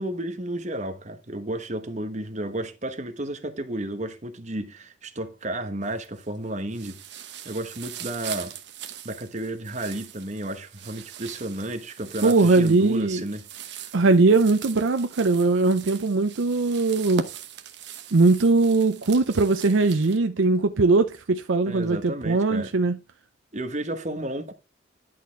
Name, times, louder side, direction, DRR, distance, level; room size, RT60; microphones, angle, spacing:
voice 1, 0.0-7.0 7.4-8.5 9.0-13.9 21.6-22.7 23.5-24.5, right 1 dB, 40° right, 1.1 m, -32 dB
sound 1, 5.8-6.4 6.7-20.2, right 7 dB, 65° right, 1.0 m, -41 dB
voice 2, 12.2-13.2 13.9-17.3 18.1-23.0, right 3 dB, 85° right, 0.6 m, -20 dB
11.0 x 4.3 x 4.5 m
head